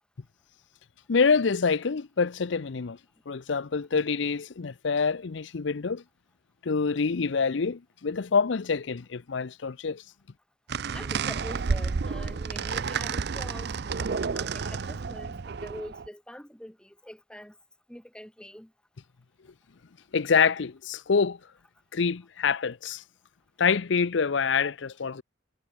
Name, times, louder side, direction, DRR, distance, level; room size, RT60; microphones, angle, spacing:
voice 1, 1.1-3.0 3.3-6.0 6.6-10.0 20.1-21.4 21.9-23.0 23.6-25.2, left 5 dB, 70° left, 0.6 m, -26 dB
sound 1, 10.7-16.1, right 5 dB, 60° right, 0.5 m, -31 dB
voice 2, 10.9-13.7 14.0-17.6 17.9-18.7, equal, 5° left, 2.3 m, -44 dB
head